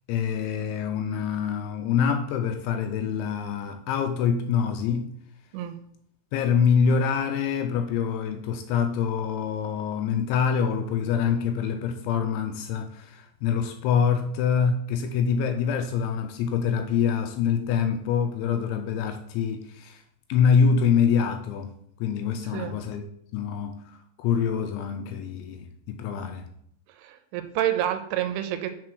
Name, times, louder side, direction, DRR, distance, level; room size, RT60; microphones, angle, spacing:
voice 1, 0.1-5.1 6.3-20.0 20.3-21.7 22.0-23.0 23.3-26.5, left 7 dB, 85° left, 2.7 m, -25 dB
voice 2, 27.0-28.7, right 12 dB, 85° right, 2.9 m, -28 dB
7.5 x 4.2 x 6.2 m
omnidirectional pair, 5.7 m